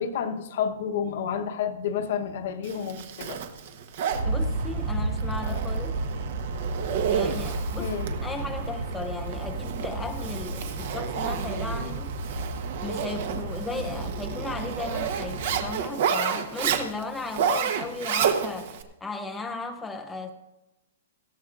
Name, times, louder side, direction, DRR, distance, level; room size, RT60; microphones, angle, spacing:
voice 1, 0.0-3.4 7.4-7.5 7.8-8.1 17.5-17.6, left 7 dB, 50° left, 1.0 m, -30 dB
Zipper (clothing), 2.6-18.8, right 7 dB, 50° right, 1.0 m, -31 dB
Aircraft, 4.1-15.7, right 3 dB, 65° right, 1.4 m, -32 dB
voice 2, 4.2-6.0 6.9-7.9 8.2-12.1 12.8-20.3, left 3 dB, 5° left, 0.5 m, -36 dB
18.0 x 13.5 x 2.5 m
hypercardioid pair, 165°, 0 cm